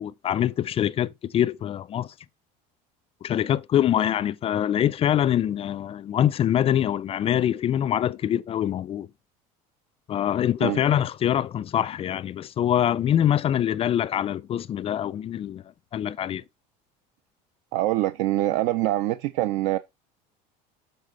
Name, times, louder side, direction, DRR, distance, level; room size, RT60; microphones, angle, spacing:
voice 1, 0.0-2.1 3.2-9.1 10.1-15.6 15.9-16.4, left 10 dB, 35° left, 0.4 m, -24 dB
voice 2, 17.7-19.8, right 15 dB, 80° right, 0.5 m, -24 dB
7.5 x 3.9 x 5.4 m
supercardioid pair, 120°, 18 cm